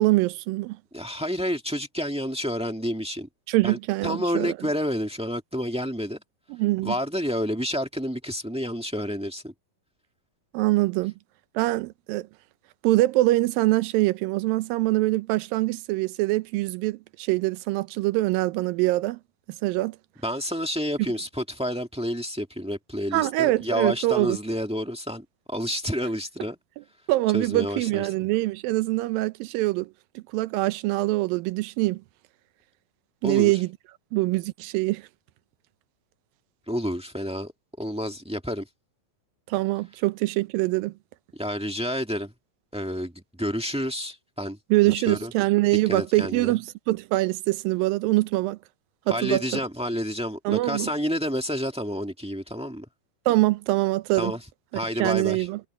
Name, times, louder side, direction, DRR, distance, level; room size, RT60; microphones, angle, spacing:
voice 1, 0.0-0.8 3.5-4.6 6.5-6.9 10.5-11.1 11.6-12.3 12.8-19.2 19.6-20.0 23.1-24.4 27.1-29.9 30.2-32.0 33.2-33.7 34.1-35.1 39.5-40.9 44.7-48.6 49.1-49.6 50.5-50.9 53.3-54.3 55.0-55.6, right 19 dB, 85° right, 2.5 m, -24 dB
voice 2, 0.9-3.3 3.6-3.8 4.0-6.2 6.8-9.5 20.2-26.6 27.3-28.1 33.2-33.5 36.7-37.5 37.8-38.7 41.4-42.3 42.7-44.6 44.9-45.3 45.8-46.5 49.1-52.8 54.2-54.4 54.7-55.5, equal, 10° right, 0.4 m, -29 dB
omnidirectional pair, 4.0 m